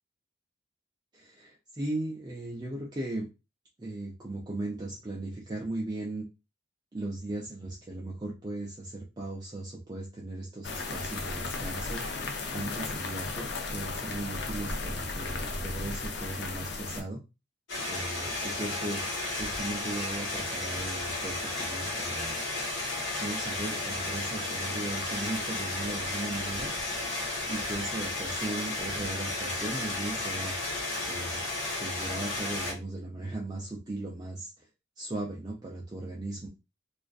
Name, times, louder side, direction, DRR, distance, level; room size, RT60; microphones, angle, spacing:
voice 1, 1.1-3.3 3.8-6.2 6.9-12.0 12.5-17.2 17.8-19.0 19.4-22.4 23.2-26.7 27.5-30.6 31.0-31.5 31.8-34.5 35.0-36.5, right 2 dB, 20° right, -3 dB, 0.4 m, -37 dB
sound 1, 10.6-17.0, left 3 dB, 60° left, 0.5 m, -35 dB
sound 2, 17.7-32.7, left 2 dB, 85° left, 1.1 m, -33 dB
2.4 x 2.3 x 2.3 m, 0.27 s
head